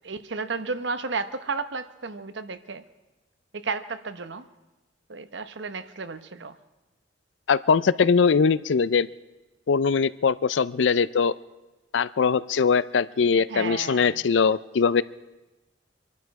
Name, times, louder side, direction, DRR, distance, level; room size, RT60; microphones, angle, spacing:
voice 1, 0.0-2.8 3.5-4.4 5.1-6.5 13.5-14.2, right 4 dB, 75° right, 11 dB, 0.9 m, -33 dB
voice 2, 7.5-9.1 9.7-11.4 11.9-15.0, left 5 dB, 75° left, 18 dB, 0.5 m, -21 dB
25.5 x 11.5 x 4.8 m, 1.1 s
head